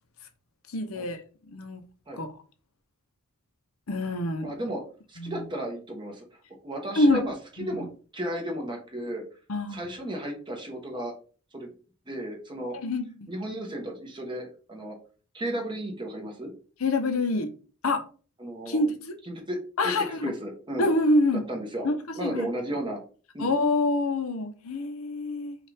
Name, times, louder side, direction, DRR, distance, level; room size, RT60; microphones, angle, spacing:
voice 1, 0.7-1.2 1.5-1.8 2.2-2.3 3.9-4.5 5.2-5.4 7.0-7.3 7.6-7.8 9.5-10.0 12.7-13.3 16.8-17.5 17.8-18.0 18.7-19.1 19.8-20.3 20.8-21.4 21.8-21.9 22.2-22.5 23.4-25.6, left 2 dB, 70° left, 0.7 m, -26 dB
voice 2, 4.4-4.8 5.1-6.2 6.6-7.9 8.1-9.2 9.7-11.1 11.5-11.7 12.1-12.8 13.3-14.9 15.3-16.5 18.4-18.8 19.3-20.9 21.5-21.9 22.1-23.0 23.3-23.5, right 1 dB, 20° right, 1.0 m, -34 dB
5.5 x 2.5 x 3.4 m
head